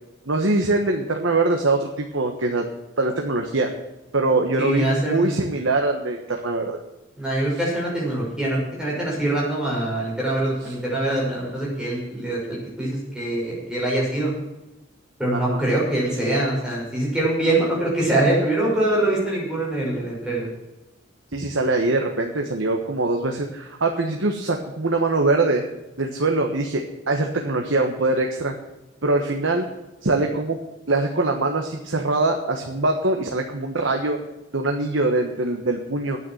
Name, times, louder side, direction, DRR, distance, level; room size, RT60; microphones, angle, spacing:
voice 1, 0.3-2.7 3.0-3.7 4.1-6.8 15.3-15.6 21.3-25.6 26.0-28.5 29.0-29.7 30.0-30.6 30.9-34.2 34.5-36.2, right 2 dB, 80° right, 2 dB, 1.3 m, -23 dB
voice 2, 4.6-5.3 7.2-14.3 15.2-20.5, right 1 dB, 5° right, -6 dB, 5.9 m, -24 dB
9.7 x 8.9 x 8.8 m, 1.0 s
head